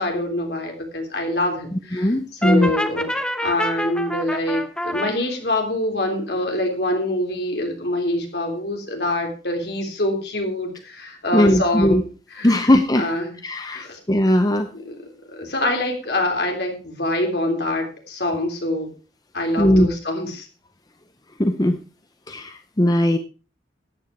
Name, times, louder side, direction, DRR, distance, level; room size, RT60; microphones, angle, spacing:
voice 1, 0.0-2.1 2.4-3.1 3.4-12.0 12.3-12.7 12.9-13.3 13.7-14.0 14.7-18.9 19.3-20.5, left 1 dB, 60° left, 3 dB, 3.4 m, -25 dB
voice 2, 1.7-2.7 11.3-12.0 12.4-13.1 13.4-14.7 19.6-19.9 21.4-21.8 22.3-23.2, left 1 dB, 20° left, 8 dB, 0.7 m, -18 dB
Brass instrument, 2.4-5.1, equal, 5° left, 1.1 m, -26 dB
13.5 x 9.1 x 4.6 m, 0.35 s
head